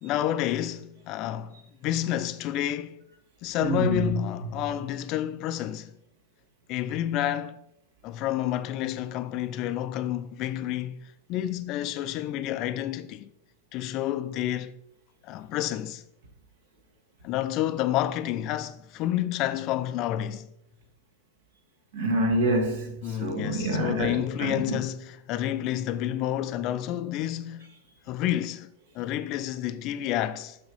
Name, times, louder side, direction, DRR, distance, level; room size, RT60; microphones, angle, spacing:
voice 1, 0.0-3.0 3.4-5.9 6.7-7.6 8.0-13.3 13.7-14.8 15.2-16.0 17.2-20.5 23.0-27.7 28.1-30.6, left 12 dB, 40° left, 0.5 m, -29 dB
voice 2, 3.6-4.1 21.9-24.8, right 1 dB, 60° right, 1.7 m, -27 dB
6.5 x 6.3 x 4.7 m
figure-of-eight pair, 90°, 0 cm